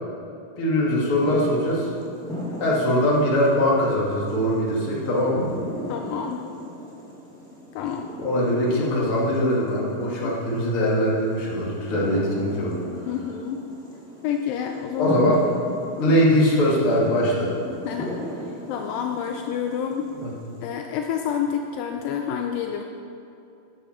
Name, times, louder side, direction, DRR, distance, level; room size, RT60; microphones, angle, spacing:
voice 1, 0.6-1.9 2.6-5.5 8.2-12.8 15.0-15.4 16.0-17.5 20.2-20.3, equal, 40° left, -5 dB, 2.5 m, -22 dB
sound 1, 1.1-20.7, equal, ahead, 1.2 m, -37 dB
voice 2, 5.9-6.5 7.7-8.1 10.2-10.6 13.1-13.6 14.2-15.4 16.0-16.2 17.9-18.4 18.7-20.1 20.6-22.8, left 8 dB, 80° left, 4 dB, 2.3 m, -28 dB
13.0 x 9.2 x 4.4 m, 2.7 s
omnidirectional pair, 4.1 m